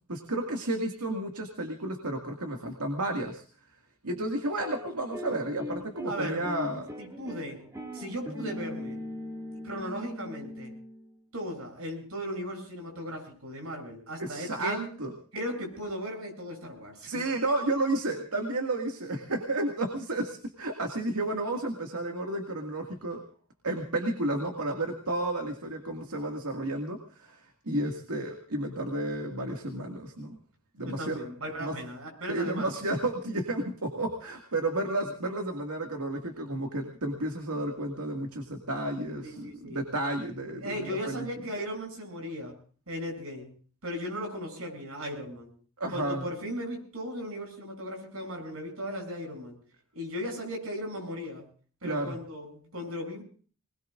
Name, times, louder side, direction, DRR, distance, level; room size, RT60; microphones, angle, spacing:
voice 1, 0.1-3.4 4.0-6.9 14.2-15.1 17.0-23.2 23.6-30.4 30.8-31.2 31.6-31.7 32.3-41.3 45.8-46.3 51.8-52.2, right 1 dB, 85° right, 3 dB, 2.2 m, -32 dB
sound 1, 4.6-11.1, left 1 dB, 15° right, 2.8 m, -40 dB
voice 2, 6.1-6.4 7.0-7.6 7.9-9.0 9.6-10.7 11.3-14.9 15.3-17.2 30.8-32.7 39.2-39.8 40.6-42.5 42.9-43.5 43.8-45.5 45.9-49.6 49.9-51.4 51.8-53.2, equal, 70° right, 2 dB, 7.7 m, -37 dB
25.0 x 21.0 x 2.6 m, 0.42 s
head